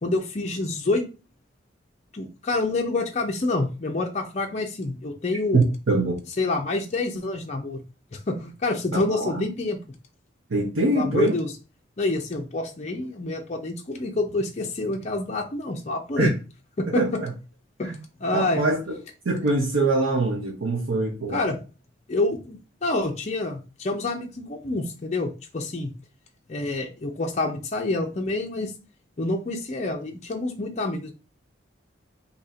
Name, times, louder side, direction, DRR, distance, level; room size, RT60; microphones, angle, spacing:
voice 1, 0.0-1.0 2.1-5.7 6.4-7.8 8.1-9.8 10.9-11.5 12.0-16.3 16.8-17.0 17.8-17.9 18.2-18.7 21.3-21.6 22.1-25.9 26.5-28.7 29.2-31.1, left 2 dB, 35° left, 0.5 m, -27 dB
voice 2, 5.5-6.2 8.9-9.5 10.5-11.3 16.2-16.3 16.9-17.1 18.3-18.9 19.2-21.4, right 2 dB, 85° right, 0.7 m, -23 dB
2.8 x 2.5 x 4.1 m
head